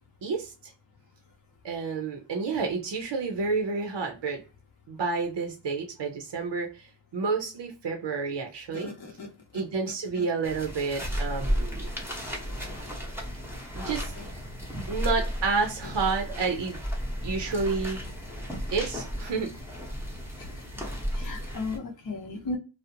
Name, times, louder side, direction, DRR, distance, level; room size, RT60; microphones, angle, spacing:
voice 1, 0.2-0.7 1.6-4.4 4.9-8.9 9.5-11.9 13.7-14.1 14.9-16.8 17.2-18.0 18.7-19.5, right 4 dB, 70° right, 0.6 m, -30 dB
voice 2, 8.7-9.3 9.5-9.6 10.1-10.2 14.2-14.3 20.4-20.5 21.1-22.6, left 3 dB, 50° left, 0.7 m, -36 dB
sound 1, 10.4-21.8, equal, 5° right, 0.7 m, -34 dB
2.5 x 2.0 x 2.7 m
wide cardioid pair, 50°, 46 cm